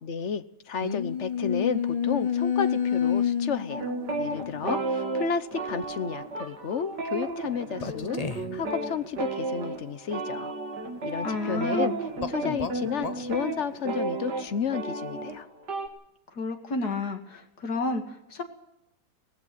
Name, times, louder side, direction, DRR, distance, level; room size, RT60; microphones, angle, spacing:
voice 1, 0.0-3.9 4.2-10.5 11.0-11.9 12.3-15.5, left 6 dB, 50° left, 13 dB, 1.1 m, -32 dB
sound 1, 0.8-4.8 5.7-5.8 7.8-8.6 12.2-13.3, left 7 dB, 30° left, 0.8 m, -29 dB
sound 2, 3.7-15.9, right 3 dB, 75° right, 2.8 m, -33 dB
voice 2, 11.2-12.0 16.3-18.4, left 3 dB, 65° left, 5 dB, 2.9 m, -31 dB
18.0 x 16.0 x 9.3 m, 0.83 s
omnidirectional pair, 1.8 m